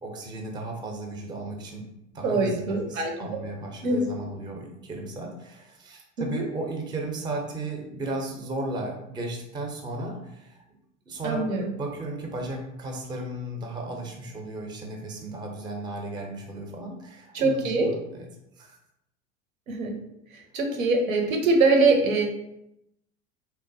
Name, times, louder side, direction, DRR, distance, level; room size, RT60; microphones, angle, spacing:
voice 1, 0.0-10.8 11.1-18.3 18.6-18.8, right 2 dB, 10° right, 1 dB, 0.4 m, -35 dB
voice 2, 2.2-3.1 3.8-4.1 6.2-6.4 11.2-11.7 17.3-17.9 19.7-20.0 20.5-22.2, right 3 dB, 80° right, 2 dB, 0.7 m, -23 dB
3.0 x 2.1 x 2.6 m, 0.83 s
hypercardioid pair, 75°, 40 cm